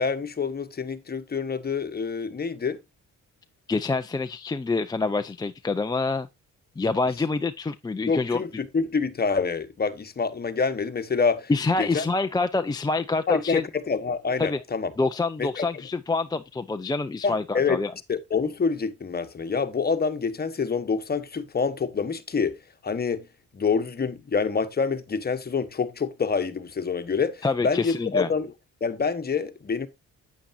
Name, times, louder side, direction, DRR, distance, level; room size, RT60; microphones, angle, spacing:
voice 1, 0.0-2.8 8.1-11.5 11.8-12.0 13.3-14.9 15.4-15.7 17.2-17.8 18.1-22.6 22.8-23.3 23.5-28.5 28.8-29.9, left 5 dB, 30° left, 1.3 m, -27 dB
voice 2, 3.7-6.3 6.8-8.4 11.5-13.6 14.4-14.6 15.0-17.9 27.4-28.3, left 3 dB, 15° left, 0.5 m, -26 dB
8.7 x 8.5 x 2.6 m
cardioid pair, 90°, 30 cm